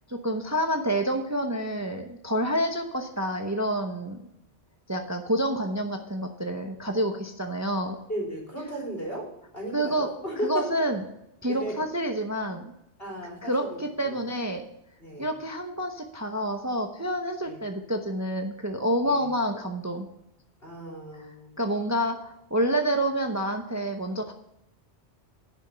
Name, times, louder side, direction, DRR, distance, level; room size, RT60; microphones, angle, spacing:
voice 1, 0.1-4.2 4.9-8.0 9.7-10.1 10.4-11.0 11.4-12.7 13.4-14.6 15.2-20.1 21.1-21.3 21.6-24.3, equal, 15° right, 5 dB, 0.7 m, -28 dB
voice 2, 8.1-9.3 9.5-10.7 11.5-11.7 13.0-14.2 15.0-15.3 17.4-17.6 19.1-19.3 20.6-21.6, equal, 60° left, -2 dB, 3.9 m, -35 dB
11.0 x 6.1 x 5.5 m, 0.85 s
omnidirectional pair, 1.1 m